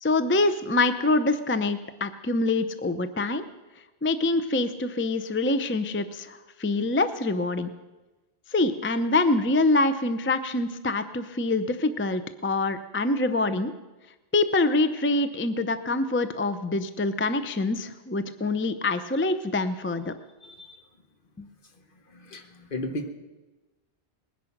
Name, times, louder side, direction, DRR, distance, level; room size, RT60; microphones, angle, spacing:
voice 1, 0.0-3.4 4.0-7.7 8.5-13.7 14.3-20.1, left 2 dB, 15° left, 11 dB, 0.5 m, -25 dB
voice 2, 20.4-20.8 21.7-23.1, left 1 dB, 55° left, 6 dB, 1.4 m, -36 dB
20.0 x 10.5 x 5.9 m, 1.1 s
omnidirectional pair, 1.0 m